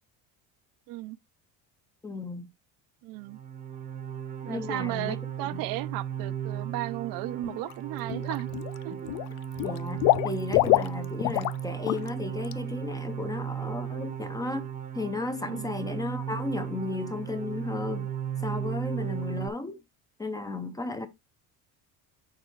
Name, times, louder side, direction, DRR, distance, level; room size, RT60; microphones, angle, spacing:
voice 1, 0.9-1.2 3.0-3.4 4.4-8.5 8.8-9.1 15.4-15.7, right 17 dB, 60° right, 0.5 m, -35 dB
voice 2, 2.0-2.5 4.5-5.6 9.6-14.7 14.9-18.1 18.4-19.8 20.2-21.1, left 3 dB, 10° left, 0.5 m, -34 dB
sound 1, 3.2-19.5, right 9 dB, 20° right, 0.7 m, -36 dB
Water / Liquid, 7.4-7.7 8.1-8.8 9.1-11.6 11.9-12.1 12.4-12.5, left 19 dB, 70° left, 0.5 m, -26 dB
7.7 x 6.6 x 3.0 m
cardioid pair, 180°, 39 cm